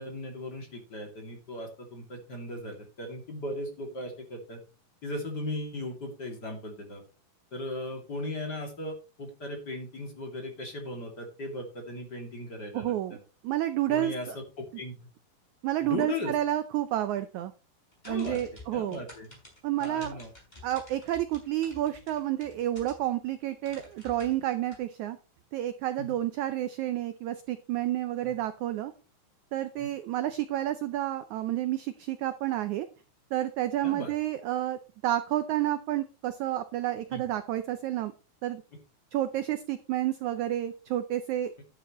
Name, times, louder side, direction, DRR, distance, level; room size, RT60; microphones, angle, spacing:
voice 1, 0.0-4.6 5.0-7.0 7.5-13.2 13.9-14.4 14.7-15.0 15.8-16.3 18.0-18.4 18.7-19.3 19.8-20.3 26.0-26.2 28.2-28.3 29.8-29.9 33.8-34.1 37.1-37.2, left 1 dB, 30° left, 2 dB, 2.8 m, -37 dB
voice 2, 12.7-13.2 13.4-14.3 15.6-17.5 18.1-19.0 19.6-20.2 20.6-25.2 25.5-28.9 29.5-32.9 33.3-38.1 38.4-38.6 39.1-41.5, right 13 dB, 85° right, 11 dB, 1.6 m, -30 dB
sound 1, 17.9-23.2 23.6-24.8, left 1 dB, 10° left, 6.1 m, -50 dB
11.0 x 10.5 x 3.1 m, 0.32 s
omnidirectional pair, 4.3 m